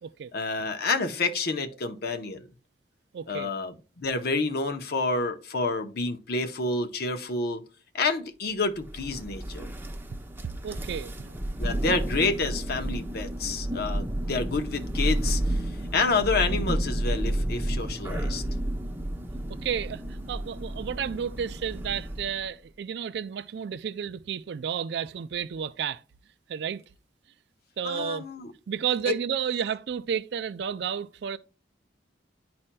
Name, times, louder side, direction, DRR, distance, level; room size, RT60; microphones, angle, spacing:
voice 1, 0.3-2.5 3.3-7.6 7.9-9.7 11.6-15.7 15.9-18.4 27.8-28.5 29.1-29.2, left 3 dB, 60° left, 0.8 m, -29 dB
voice 2, 3.1-3.5 10.4-11.4 19.5-26.0 26.5-26.8 27.8-28.2 28.7-31.4, right 7 dB, 70° right, 0.4 m, -32 dB
Thunder, 8.8-22.5, right 1 dB, 15° right, 0.7 m, -31 dB
11.0 x 4.2 x 2.2 m
head